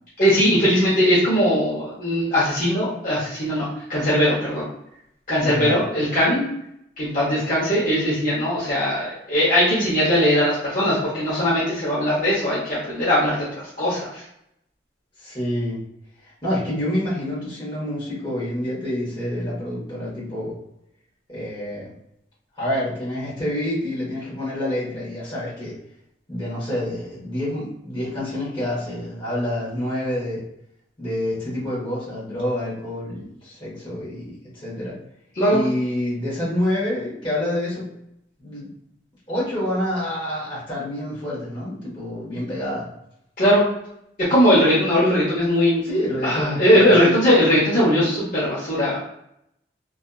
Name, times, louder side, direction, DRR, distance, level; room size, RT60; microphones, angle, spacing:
voice 1, 0.2-4.6 5.3-6.4 7.0-14.2 35.4-35.6 43.4-43.6 44.2-45.8 46.2-49.0, equal, 45° left, -8 dB, 0.8 m, -19 dB
voice 2, 5.4-5.8 15.2-15.8 16.2-20.5 21.3-21.9 22.6-25.7 26.3-30.4 31.0-35.0 35.5-37.8 38.4-38.7 39.3-42.9 45.8-47.1, left 1 dB, 25° left, -8 dB, 1.1 m, -27 dB
2.7 x 2.3 x 2.3 m, 0.77 s
head